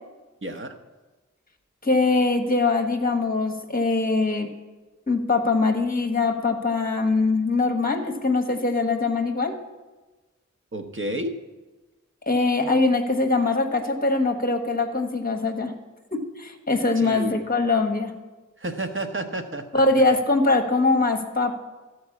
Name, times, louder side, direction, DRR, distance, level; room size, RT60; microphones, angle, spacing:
voice 1, 0.4-0.7 10.7-11.3 17.0-17.3 18.6-19.8, right 1 dB, 40° right, 6 dB, 1.0 m, -30 dB
voice 2, 1.8-4.5 5.1-9.5 12.3-15.7 16.1-18.1 19.7-21.5, left 3 dB, 30° left, 5 dB, 1.2 m, -22 dB
13.5 x 4.6 x 8.4 m, 1.2 s
wide cardioid pair, 60°, 30 cm